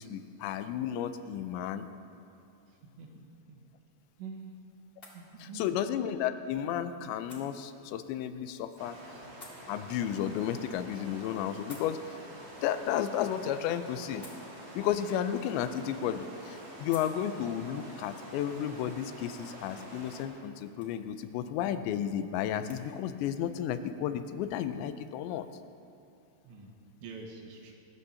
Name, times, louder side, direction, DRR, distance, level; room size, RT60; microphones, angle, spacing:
voice 1, 0.0-1.9 5.6-9.0 9.7-12.2 12.6-14.3 14.7-25.5, left 10 dB, 85° left, 10 dB, 2.9 m, -33 dB
voice 2, 2.7-3.7 4.2-4.5 5.1-5.8 26.4-26.7 27.0-27.8, right 4 dB, 80° right, 0 dB, 3.6 m, -46 dB
sound 1, 3.4-22.8, left 2 dB, 35° left, 0.8 m, -59 dB
sound 2, 8.8-20.2, right 1 dB, 35° right, 2.8 m, -47 dB
27.0 x 14.0 x 2.8 m, 2.7 s
omnidirectional pair, 5.1 m